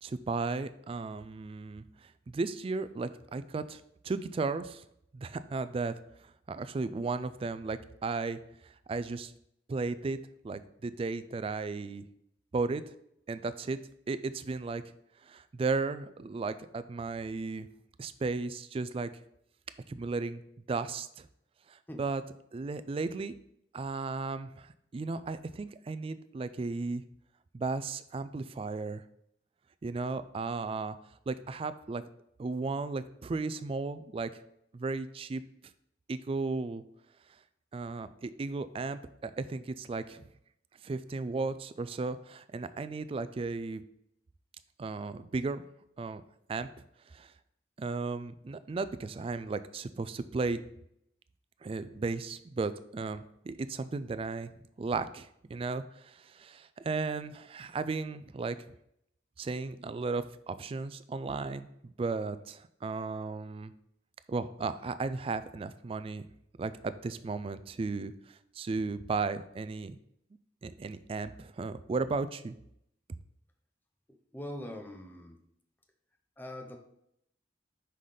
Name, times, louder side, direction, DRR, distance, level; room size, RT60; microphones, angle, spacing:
voice 1, 0.0-1.8 2.3-4.8 5.1-5.9 6.5-9.3 9.7-10.2 10.4-12.0 12.5-12.8 13.3-13.8 14.1-14.8 15.2-17.7 18.0-19.1 19.9-20.4 20.7-21.3 21.7-22.2 22.5-23.3 23.7-27.0 27.5-29.0 29.8-31.0 31.3-32.0 32.4-34.3 34.7-35.4 36.1-36.8 37.7-40.2 40.8-43.8 44.8-45.6 46.0-46.2 46.5-46.7 47.1-47.3 47.8-50.6 51.6-54.5 54.8-58.6 59.4-63.7 64.3-66.2 66.6-70.0 70.6-72.5, right 3 dB, 30° right, 13 dB, 0.3 m, -35 dB
voice 2, 74.1-75.4 76.4-76.8, left 1 dB, 10° left, 4 dB, 0.7 m, -43 dB
5.6 x 4.0 x 4.9 m, 0.75 s
head